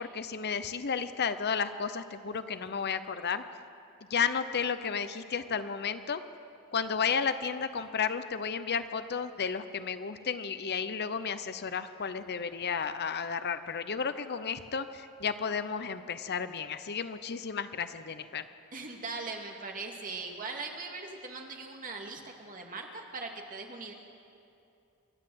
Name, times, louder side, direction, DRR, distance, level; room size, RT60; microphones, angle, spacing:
voice 1, 0.0-3.4 4.1-6.2 6.7-18.5, left 6 dB, 50° left, 11 dB, 0.7 m, -33 dB
voice 2, 18.7-23.9, right 3 dB, 40° right, 2 dB, 2.1 m, -40 dB
27.5 x 12.0 x 7.8 m, 2.7 s
head